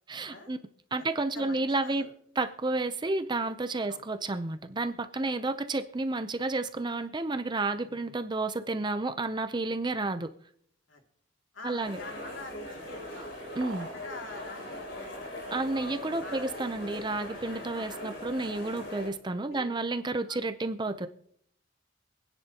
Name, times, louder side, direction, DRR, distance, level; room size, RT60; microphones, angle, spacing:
voice 1, 0.1-0.6 0.9-2.1 2.4-10.3 11.6-12.0 13.6-13.9 15.5-21.1, right 2 dB, 25° right, 0.6 m, -31 dB
voice 2, 1.0-2.1 3.9-4.0 10.9-11.0 11.5-13.3 13.8-15.6 16.2-16.5 17.7-18.1 19.5-19.7 20.3-20.4, left 2 dB, 80° left, 2.5 m, -46 dB
sound 1, 11.8-19.1, left 1 dB, 65° left, 3.4 m, -40 dB
sound 2, 13.6-14.2, right 5 dB, 80° right, 1.0 m, -44 dB
26.0 x 9.9 x 2.9 m
head